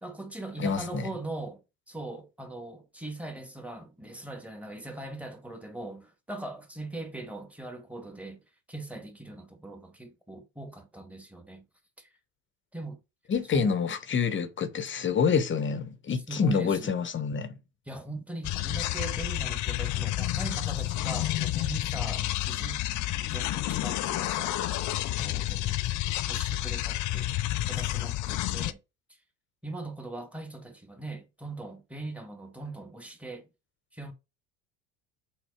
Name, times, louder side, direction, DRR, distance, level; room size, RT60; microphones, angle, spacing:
voice 1, 0.0-1.6 1.9-8.4 8.7-11.6 12.0-12.1 12.7-13.0 13.5-13.8 16.3-17.0 17.9-22.8 23.2-24.6 25.1-26.0 26.3-27.3 27.7-28.8 29.6-33.5 33.9-34.1, right 2 dB, 5° right, 1.7 m, -40 dB
voice 2, 0.6-1.1 13.3-17.6, left 6 dB, 30° left, 1.1 m, -27 dB
Pulsating Low Stutter Loop, 18.4-28.7, left 15 dB, 45° left, 0.6 m, -30 dB
6.3 x 3.7 x 4.8 m
supercardioid pair, 90°, 40 cm